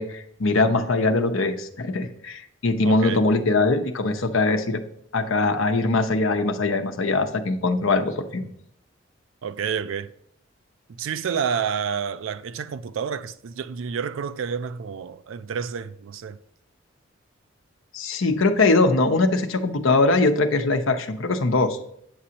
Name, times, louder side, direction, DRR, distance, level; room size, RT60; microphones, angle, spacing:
voice 1, 0.0-4.8 5.1-8.5 17.9-21.8, left 3 dB, 85° left, 0.8 m, -22 dB
voice 2, 2.8-3.2 9.4-10.1 10.9-16.4, right 6 dB, 80° right, 0.4 m, -29 dB
8.7 x 6.1 x 2.8 m
head